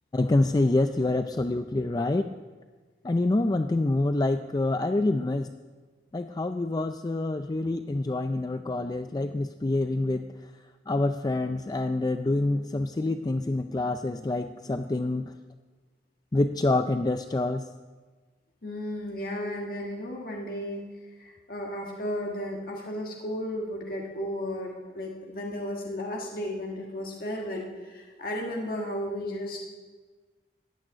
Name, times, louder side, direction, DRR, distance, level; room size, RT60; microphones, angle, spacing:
voice 1, 0.1-2.3 3.0-5.5 6.1-10.5 10.9-15.3 16.3-17.6, left 2 dB, 20° left, 8 dB, 0.4 m, -26 dB
voice 2, 18.6-20.8 21.2-29.6, left 1 dB, 55° left, 0 dB, 1.5 m, -34 dB
15.0 x 6.5 x 9.8 m, 1.4 s
head